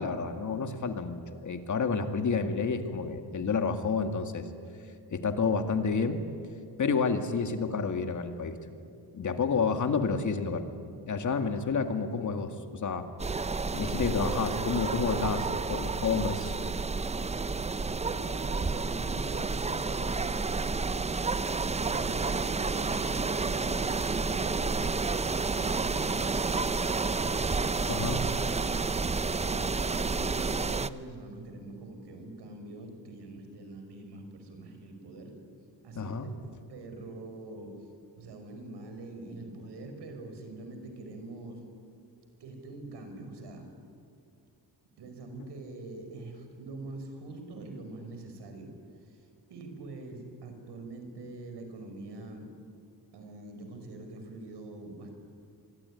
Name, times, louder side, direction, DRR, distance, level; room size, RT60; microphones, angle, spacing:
voice 1, 0.0-4.4 5.1-6.2 6.8-8.6 9.1-10.6 11.1-13.1 13.7-16.5 27.9-28.2 35.9-36.3, left 5 dB, 45° left, 7 dB, 2.2 m, -29 dB
sound 1, 13.2-30.9, right 4 dB, 15° right, 0.6 m, -30 dB
voice 2, 18.0-20.4 21.6-27.1 28.0-28.2 29.4-35.3 35.8-36.3 36.7-37.7 38.2-41.6 42.4-43.7 45.0-48.7 49.0-52.5 53.1-55.1, right 2 dB, 90° right, 6 dB, 5.4 m, -44 dB
25.5 x 23.0 x 9.9 m, 2.4 s
wide cardioid pair, 140°, 40 cm